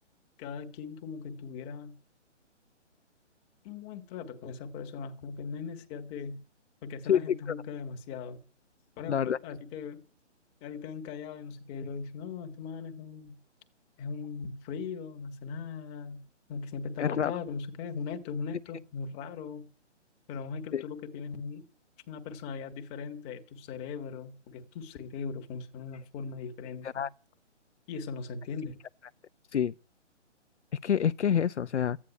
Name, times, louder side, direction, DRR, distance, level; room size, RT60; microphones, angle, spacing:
voice 1, 0.4-2.0 3.6-6.4 6.8-8.4 9.0-10.0 10.6-13.4 14.0-16.2 16.5-19.7 20.3-21.6 22.1-27.0 27.9-28.8, left 5 dB, 15° left, 1.5 m, -39 dB
voice 2, 9.1-9.4 17.0-17.3 20.7-20.8 26.8-27.1 29.5-29.7 30.8-32.0, left 8 dB, 70° left, 0.7 m, -27 dB
14.0 x 9.9 x 9.9 m
hypercardioid pair, 150°, 36 cm